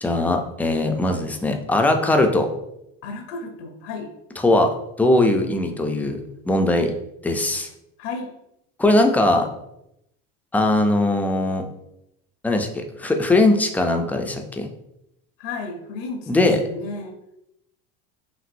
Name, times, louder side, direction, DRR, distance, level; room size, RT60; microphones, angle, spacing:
voice 1, 0.0-2.5 4.4-4.7 5.0-6.2 6.5-6.9 7.2-7.7 8.8-9.5 10.5-11.7 12.4-14.7 16.3-16.6, left 2 dB, 5° left, 5 dB, 0.3 m, -20 dB
voice 2, 3.0-4.1 8.0-8.3 15.4-17.2, left 3 dB, 80° left, 4 dB, 0.8 m, -33 dB
6.0 x 2.6 x 2.5 m, 0.82 s
supercardioid pair, 130°, 30 cm